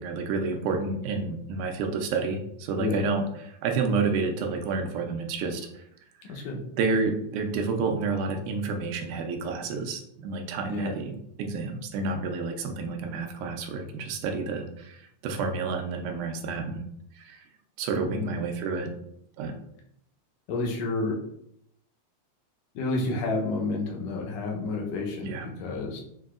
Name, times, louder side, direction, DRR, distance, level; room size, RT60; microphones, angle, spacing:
voice 1, 0.0-5.8 6.3-6.5 6.8-16.8 17.2-17.4 17.8-18.9 19.4-19.6 25.2-25.5, right 4 dB, 90° right, 4 dB, 2.1 m, -30 dB
voice 2, 6.3-6.6 10.7-10.9 18.1-18.3 20.5-21.1 22.8-26.0, left 3 dB, 75° left, -1 dB, 1.8 m, -30 dB
5.9 x 2.7 x 2.4 m, 0.75 s
omnidirectional pair, 3.4 m